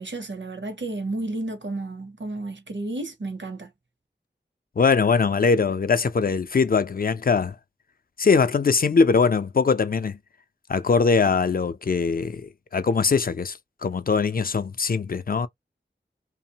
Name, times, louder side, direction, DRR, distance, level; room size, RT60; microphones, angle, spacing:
voice 1, 0.0-3.7, right 2 dB, 70° right, 0.7 m, -32 dB
voice 2, 4.8-7.5 8.2-10.2 10.7-12.4 12.7-15.5, left 5 dB, 50° left, 0.4 m, -21 dB
2.8 x 2.0 x 2.7 m
wide cardioid pair, 55°, 19 cm